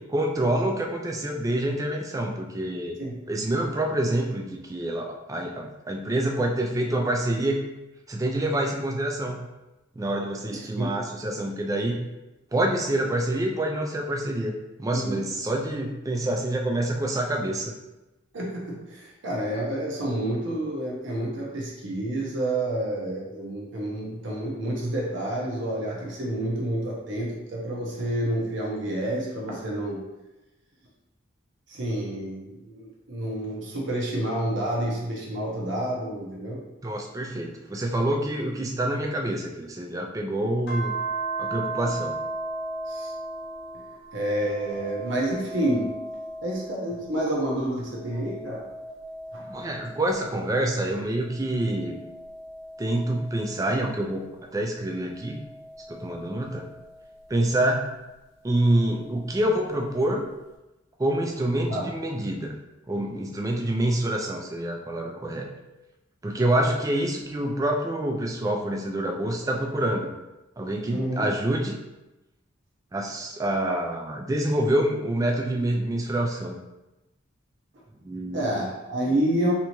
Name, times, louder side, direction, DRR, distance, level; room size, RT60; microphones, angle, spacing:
voice 1, 0.0-3.0 3.3-7.6 8.1-9.5 10.0-12.1 12.5-14.5 14.8-17.7 36.8-40.9 41.4-42.2 49.5-52.0 52.8-54.3 54.5-55.4 55.9-56.7 57.3-57.9 58.4-60.3 61.0-62.5 62.9-65.5 66.2-70.1 70.6-71.8 72.9-76.6 78.0-78.7, right 1 dB, 15° right, 2 dB, 0.3 m, -27 dB
voice 2, 18.3-30.0 31.7-36.6 42.9-43.1 44.1-45.9 46.4-48.6 49.3-49.4 61.7-61.9 66.4-66.7 70.9-71.3 78.3-79.5, right 1 dB, 60° right, -3 dB, 0.7 m, -29 dB
sound 1, 40.7-47.4 47.8-50.7 51.3-54.1 54.8-57.3 58.6-59.7, right 2 dB, 50° left, 0.9 m, -37 dB
3.3 x 2.7 x 2.9 m, 1.0 s
head